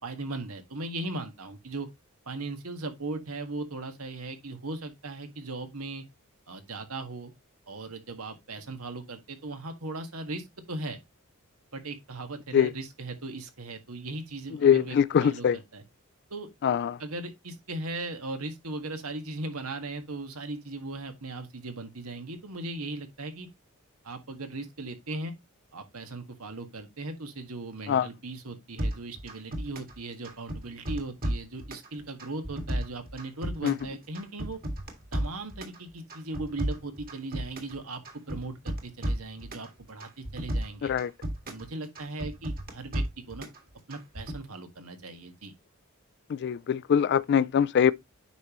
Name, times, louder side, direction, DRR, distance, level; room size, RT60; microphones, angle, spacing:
voice 1, 0.0-1.9 2.2-6.0 6.5-7.3 7.7-11.0 11.7-15.8 16.3-16.5 17.0-23.5 24.0-25.3 25.7-34.6 35.1-40.9 41.5-43.5 43.9-45.5, right 2 dB, 85° right, 1.7 m, -38 dB
voice 2, 14.6-15.6 16.6-16.9 27.9-28.1 33.6-33.7 40.8-41.1 46.4-47.9, left 8 dB, 50° left, 0.3 m, -23 dB
sound 1, 28.8-30.0 30.2-31.9 32.2-33.9 34.1-35.8 36.1-37.8 38.1-39.7 40.0-41.7 42.0-43.6 43.9-44.4, right 1 dB, 45° right, 2.0 m, -33 dB
9.2 x 5.4 x 3.0 m
head